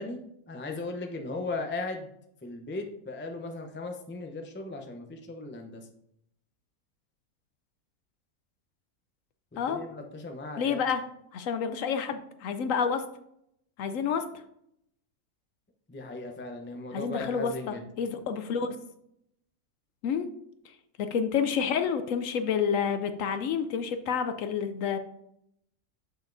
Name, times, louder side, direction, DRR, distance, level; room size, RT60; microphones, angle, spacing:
voice 1, 0.0-2.1 2.4-5.9 9.5-10.8 15.9-17.8, left 2 dB, 15° left, 4 dB, 0.3 m, -37 dB
voice 2, 10.6-11.0 11.3-13.0 13.8-14.2 16.9-18.7 20.0-20.3 21.0-25.0, left 7 dB, 70° left, 9 dB, 0.9 m, -29 dB
6.8 x 6.2 x 2.6 m, 0.75 s
omnidirectional pair, 1.6 m